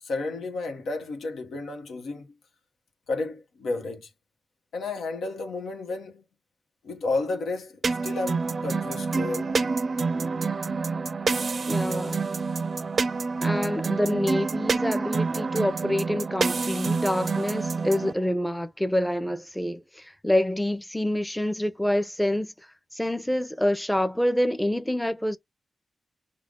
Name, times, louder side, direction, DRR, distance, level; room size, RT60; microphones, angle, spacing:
voice 1, 0.0-2.3 3.1-4.1 4.7-6.2 6.8-9.6, left 3 dB, 90° left, 0.9 m, -32 dB
sound 1, 7.8-18.1, right 4 dB, 60° right, 0.4 m, -27 dB
voice 2, 11.6-12.2 13.4-22.5 22.9-25.4, left 1 dB, 10° left, 0.7 m, -27 dB
4.8 x 2.2 x 3.7 m
cardioid pair, 50°, 0 cm